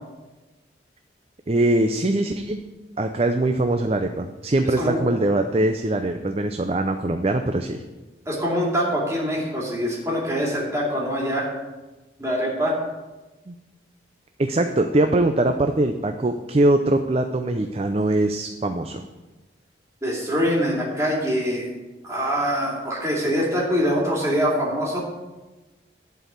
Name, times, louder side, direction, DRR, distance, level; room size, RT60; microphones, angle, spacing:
voice 1, 1.5-2.7 3.0-7.8 13.5-13.6 14.4-19.0, right 2 dB, 30° right, 6 dB, 0.5 m, -22 dB
voice 2, 8.3-11.5 12.2-12.7 20.0-21.7 22.0-25.0, equal, 15° right, -4 dB, 2.6 m, -24 dB
11.0 x 4.6 x 8.1 m, 1.1 s
head